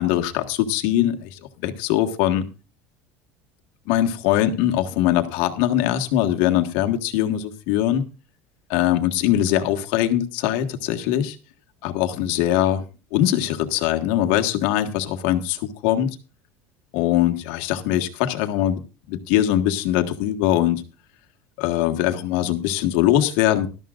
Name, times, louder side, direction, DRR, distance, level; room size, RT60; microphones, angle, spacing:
voice 1, 0.0-2.5 3.9-8.0 8.7-11.3 11.8-12.8 13.1-16.1 16.9-18.8 19.1-20.8 21.6-23.7, left 12 dB, 75° left, 5 dB, 1.7 m, -22 dB
18.0 x 13.0 x 2.5 m, 0.32 s
cardioid pair, 160°, 6 cm